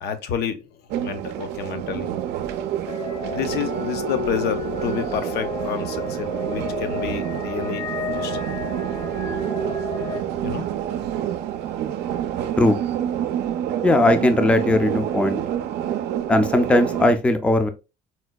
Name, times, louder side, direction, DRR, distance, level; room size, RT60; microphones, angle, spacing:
voice 1, 0.0-0.6 1.0-2.2 3.3-8.4 10.4-10.7, left 8 dB, 75° left, 0.6 m, -30 dB
sound 1, 0.9-17.1, right 10 dB, 80° right, 0.5 m, -28 dB
sound 2, 2.9-10.2, left 4 dB, 45° left, 0.8 m, -32 dB
voice 2, 13.8-15.4 16.3-17.7, left 2 dB, 5° left, 0.4 m, -18 dB
4.2 x 2.2 x 2.3 m
cardioid pair, 110°, 17 cm